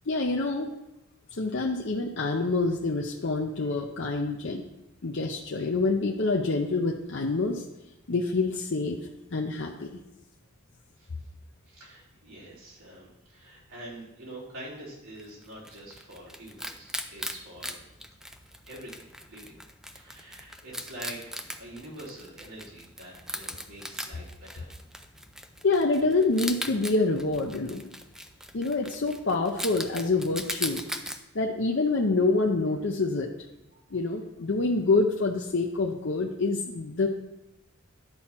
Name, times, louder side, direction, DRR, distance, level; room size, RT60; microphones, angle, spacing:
voice 1, 0.1-0.7 1.3-4.6 5.0-7.6 8.1-9.0 9.3-9.9 25.6-27.9 28.5-30.8 31.3-33.3 33.9-37.1, left 3 dB, 60° left, 1 dB, 0.6 m, -26 dB
voice 2, 11.7-17.8 18.7-19.6 19.9-24.7, right 1 dB, 70° right, -6 dB, 3.5 m, -45 dB
Wild animals, 15.2-31.2, equal, ahead, 0.4 m, -40 dB
10.5 x 4.3 x 5.9 m, 0.95 s
head